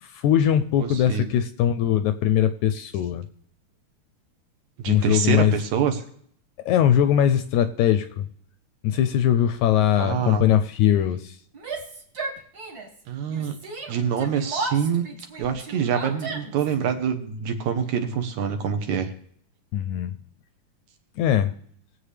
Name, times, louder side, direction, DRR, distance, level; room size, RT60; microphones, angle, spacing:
voice 1, 0.0-3.2 4.9-5.5 6.6-8.2 8.8-11.4 19.7-20.1 21.2-21.5, left 10 dB, 80° left, 11 dB, 1.8 m, -21 dB
voice 2, 0.8-1.2 4.8-6.0 10.0-10.4 13.1-13.6 13.9-15.1 15.4-19.1, right 7 dB, 70° right, 6 dB, 2.3 m, -25 dB
Yell, 11.5-13.0 13.3-16.7, right 3 dB, 40° right, 1.6 m, -34 dB
21.5 x 7.8 x 3.3 m, 0.64 s
omnidirectional pair, 3.7 m